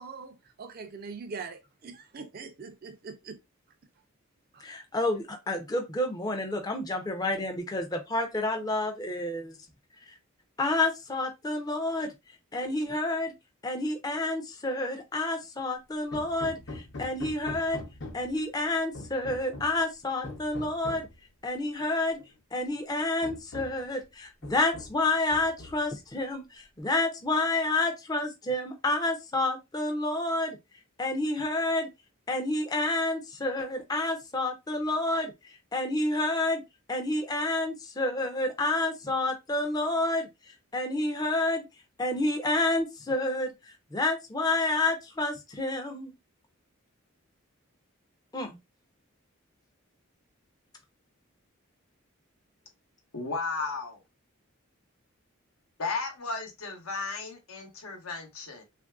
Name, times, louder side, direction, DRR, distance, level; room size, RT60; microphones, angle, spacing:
voice 1, 0.0-3.4 4.5-4.7, right 4 dB, 45° right, 0.4 m, -42 dB
voice 2, 4.6-9.6 10.1-10.2 10.6-12.1 12.5-13.3 13.6-17.8 18.1-21.1 21.4-22.2 22.5-30.6 31.0-31.9 32.3-35.3 35.7-36.6 36.9-40.3 40.7-41.6 42.0-46.1 48.3-48.6, left 2 dB, 20° left, 0.5 m, -29 dB
Hammer, 16.1-18.4 18.9-19.8 20.2-21.2 22.2-22.3 22.7-22.8 23.2-23.9 24.4-25.0 25.3-26.0, left 2 dB, 55° left, 0.7 m, -42 dB
voice 3, 53.1-54.0 55.8-58.6, left 4 dB, 80° left, 0.9 m, -34 dB
3.2 x 2.5 x 2.3 m
head